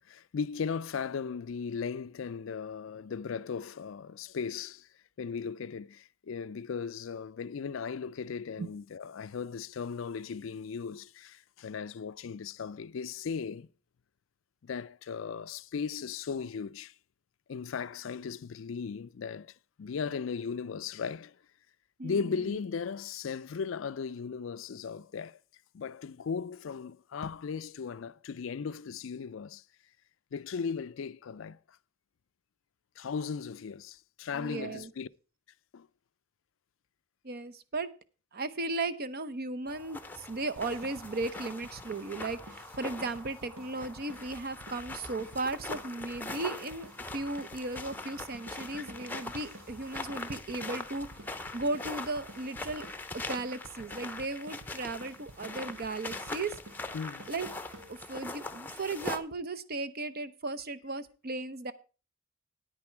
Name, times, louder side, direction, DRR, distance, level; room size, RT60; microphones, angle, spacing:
voice 1, 0.1-4.9 5.2-13.7 14.6-16.9 17.5-21.4 22.0-25.4 25.7-29.6 30.3-31.6 33.0-35.1 35.7-35.9 56.9-57.3, left 6 dB, 70° left, 0.4 m, -37 dB
voice 2, 34.3-34.9 37.2-37.9 38.3-51.1 51.5-52.9 53.3-56.5 57.3-57.5 57.9-61.7, right 3 dB, 50° right, 0.8 m, -36 dB
sound 1, 39.7-59.2, left 2 dB, 10° left, 0.7 m, -42 dB
sound 2, 40.6-58.3, right 2 dB, 70° right, 1.0 m, -52 dB
9.6 x 9.5 x 4.4 m
head